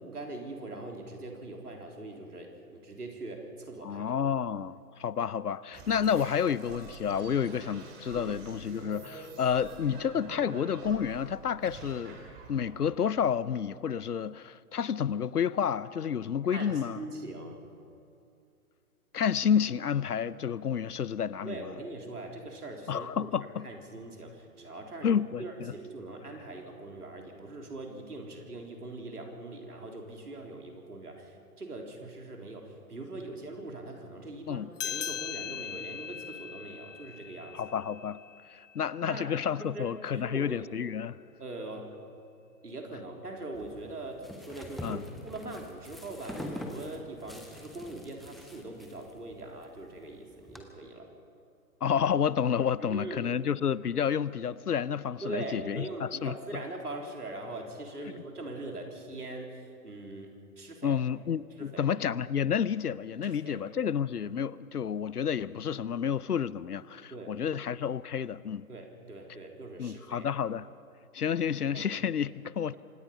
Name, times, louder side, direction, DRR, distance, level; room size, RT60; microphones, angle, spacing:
voice 1, 0.1-4.1 8.1-8.4 16.5-17.6 21.4-23.3 23.6-37.7 39.1-39.3 39.7-39.9 40.1-40.6 41.4-41.9 42.6-51.1 52.8-53.4 55.2-60.3 60.6-60.9 61.6-61.9 63.2-63.6 67.1-67.4 68.7-70.3 71.7-71.9, right 2 dB, 80° right, 1 dB, 3.9 m, -42 dB
voice 2, 3.8-12.2 12.5-17.0 19.1-21.6 22.9-23.6 25.0-25.7 34.5-34.7 37.5-38.2 38.7-41.2 44.8-45.0 51.8-56.6 60.8-68.7 69.8-70.7 71.1-72.7, left 8 dB, 80° left, 20 dB, 0.7 m, -30 dB
sound 1, 5.7-13.9, right 4 dB, 20° right, 2.9 m, -46 dB
sound 2, 34.8-39.7, left 9 dB, 55° left, 1.0 m, -40 dB
sound 3, 43.5-50.6, left 1 dB, ahead, 1.0 m, -45 dB
25.5 x 19.0 x 5.6 m, 2.6 s
figure-of-eight pair, 125°, 45 cm